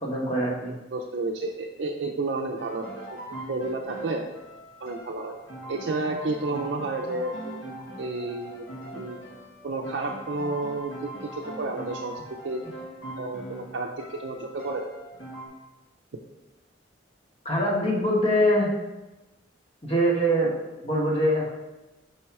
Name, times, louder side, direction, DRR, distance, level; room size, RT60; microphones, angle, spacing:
voice 1, 0.0-0.7 17.4-18.7 19.8-20.5 20.8-21.5, equal, 35° left, -3 dB, 1.3 m, -23 dB
voice 2, 0.9-3.2 3.5-4.2 4.8-5.3 5.7-8.7 8.9-9.2 9.6-12.6 13.2-14.9, right 2 dB, 65° right, 0 dB, 0.5 m, -31 dB
sound 1, 2.6-15.5, right 1 dB, 80° left, 1.4 m, -41 dB
5.4 x 4.3 x 4.6 m, 1.1 s
head